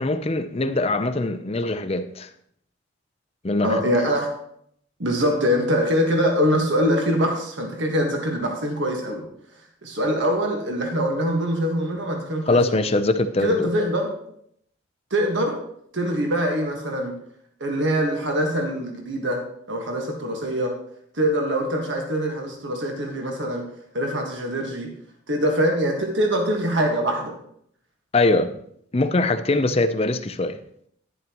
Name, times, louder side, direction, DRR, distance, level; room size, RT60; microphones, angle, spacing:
voice 1, 0.0-2.3 3.4-3.8 12.5-13.7 28.1-28.5 28.9-30.6, left 2 dB, 30° left, 0.6 m, -22 dB
voice 2, 3.6-4.3 5.0-9.2 9.8-12.8 13.4-14.1 15.1-15.6 15.9-17.1 17.6-19.4 19.7-20.7 21.1-23.6 23.9-24.9 25.3-27.4, equal, 65° right, 1.5 m, -23 dB
11.0 x 10.5 x 3.0 m
head